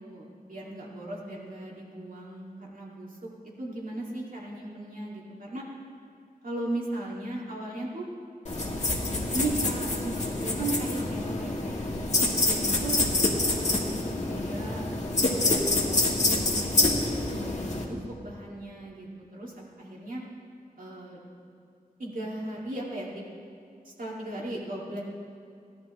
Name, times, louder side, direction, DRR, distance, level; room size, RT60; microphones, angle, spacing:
voice 1, 0.0-3.1 3.6-5.6 6.4-8.1 9.3-11.9 12.5-13.0 13.5-14.0 14.3-14.8 15.1-20.2 20.8-21.2 22.0-23.3 23.8-25.0, right 1 dB, 65° right, -4 dB, 2.5 m, -37 dB
sound 1, 8.5-17.8, left 2 dB, 50° left, 1.6 m, -27 dB
17.0 x 11.5 x 3.2 m, 2.4 s
wide cardioid pair, 100°, 15 cm